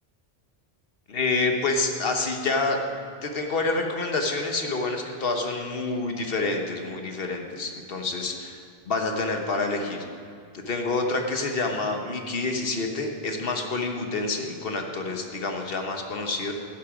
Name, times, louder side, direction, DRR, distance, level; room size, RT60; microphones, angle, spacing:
voice 1, 1.1-8.5 8.9-10.0 10.5-16.5, left 3 dB, 65° left, 3 dB, 1.4 m, -28 dB
12.0 x 10.5 x 5.1 m, 2.3 s
omnidirectional pair, 1.0 m